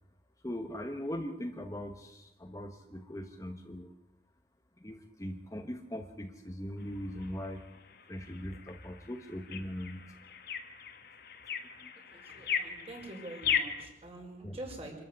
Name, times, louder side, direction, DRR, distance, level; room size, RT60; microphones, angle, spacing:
voice 1, 0.4-3.9 4.8-7.7 8.1-10.1 11.5-11.9 12.2-12.3 14.4-14.6, equal, 20° left, 5 dB, 1.2 m, -40 dB
sound 1, 6.8-13.9, left 7 dB, 55° left, 1.8 m, -38 dB
voice 2, 12.1-15.0, right 1 dB, 35° right, 1 dB, 5.7 m, -45 dB
26.5 x 13.5 x 8.3 m, 0.91 s
head